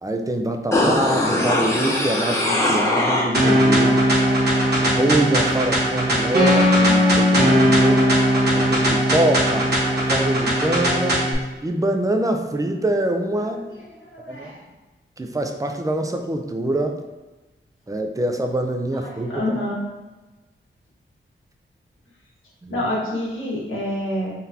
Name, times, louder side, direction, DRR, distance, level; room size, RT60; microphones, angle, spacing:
voice 1, 0.0-4.0 4.8-8.1 8.5-9.7 10.1-11.3 11.6-13.6 14.3-14.5 15.2-17.0 17.9-19.6 22.6-22.8, right 1 dB, 15° right, 4 dB, 0.4 m, -24 dB
sound 1, 0.7-3.7 4.0-4.1, left 1 dB, 15° left, 0.8 m, -21 dB
sound 2, 3.3-11.3, equal, 55° right, 1.2 m, -18 dB
voice 2, 14.0-14.6 18.9-19.8 22.7-24.3, left 1 dB, 75° left, -5 dB, 1.4 m, -27 dB
3.9 x 3.4 x 2.7 m, 1.2 s
wide cardioid pair, 125°, 21 cm